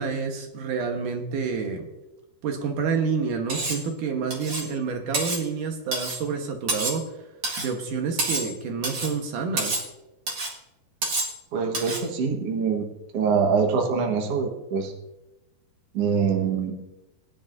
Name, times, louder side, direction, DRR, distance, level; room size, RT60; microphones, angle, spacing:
voice 1, 0.0-1.9 2.4-9.9, right 5 dB, 65° right, 4 dB, 2.1 m, -29 dB
Cutlery silverware, 3.5-3.9 4.3-4.7 5.1-5.4 5.9-6.2 6.7-7.0 7.4-7.7 8.2-8.5 8.8-9.2 9.6-9.9 10.3-10.5 11.0-11.4 11.7-12.1, right 2 dB, 50° right, 1.5 m, -28 dB
voice 2, 11.5-12.8 13.1-14.9 15.9-16.7, right 5 dB, 85° right, 2 dB, 1.3 m, -24 dB
21.5 x 10.0 x 2.6 m, 0.97 s
omnidirectional pair, 4.9 m